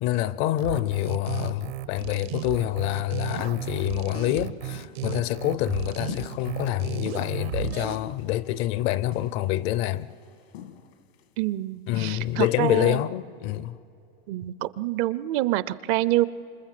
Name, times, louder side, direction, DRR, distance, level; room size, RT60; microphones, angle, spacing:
voice 1, 0.0-10.1 11.9-13.8, left 14 dB, 40° left, 0.6 m, -27 dB
sound 1, 0.6-8.0, right 13 dB, 75° right, 1.2 m, -34 dB
sound 2, 4.7-5.0 6.1-6.6 7.1-7.2 7.6-8.6 9.1-9.8 10.1-10.2 10.5-11.2 11.9-12.5, left 10 dB, 75° left, 1.6 m, -40 dB
voice 2, 11.4-13.0 14.3-16.3, right 16 dB, 40° right, 0.6 m, -26 dB
28.0 x 27.0 x 7.6 m
supercardioid pair, 140°, 31 cm